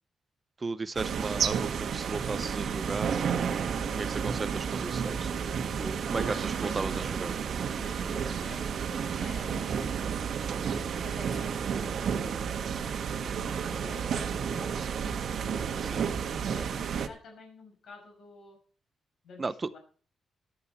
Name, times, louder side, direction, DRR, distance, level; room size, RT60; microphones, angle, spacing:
voice 1, 0.6-3.3 3.9-5.3 5.8-7.3 15.8-16.1 19.4-19.7, right 3 dB, 25° right, 14 dB, 0.6 m, -35 dB
sound 1, 0.9-17.1, right 7 dB, 65° right, 1.3 m, -31 dB
voice 2, 6.1-7.1 7.7-9.8 10.7-11.5 13.2-14.8 15.5-18.6 19.2-19.8, left 3 dB, 70° left, 2 dB, 5.9 m, -49 dB
14.0 x 11.5 x 4.3 m, 0.41 s
cardioid pair, 125°, 0 cm